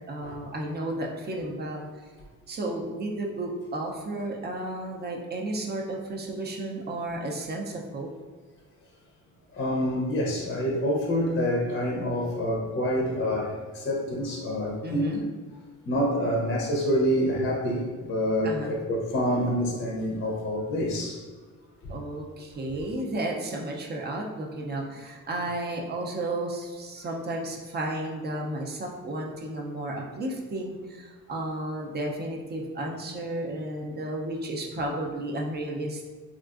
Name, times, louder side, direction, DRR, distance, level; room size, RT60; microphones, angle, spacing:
voice 1, 0.1-1.8 2.5-8.1 14.8-15.2 18.4-18.8 21.9-36.0, right 1 dB, 30° right, 0 dB, 0.4 m, -33 dB
voice 2, 9.5-15.3 15.9-21.2 21.8-21.9, equal, 35° left, -1 dB, 0.5 m, -27 dB
3.6 x 2.4 x 2.3 m, 1.4 s
cardioid pair, 125°, 32 cm